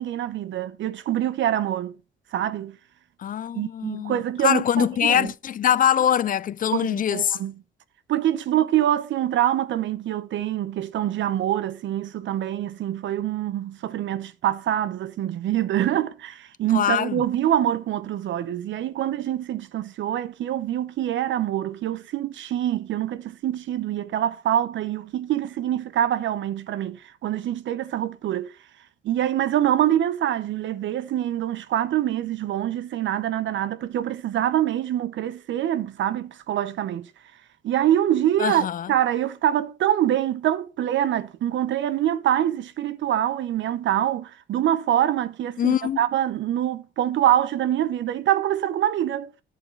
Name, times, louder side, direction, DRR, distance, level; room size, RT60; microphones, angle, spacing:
voice 1, 0.0-2.0 2.3-2.8 3.5-5.3 6.7-7.5 8.1-28.5 29.0-37.1 37.6-49.3, right 11 dB, 70° right, 0.8 m, -25 dB
voice 2, 3.2-7.4 16.7-17.2 38.4-38.9 45.6-46.0, left 9 dB, 45° left, 0.4 m, -23 dB
11.0 x 6.7 x 3.9 m
cardioid pair, 90°, 20 cm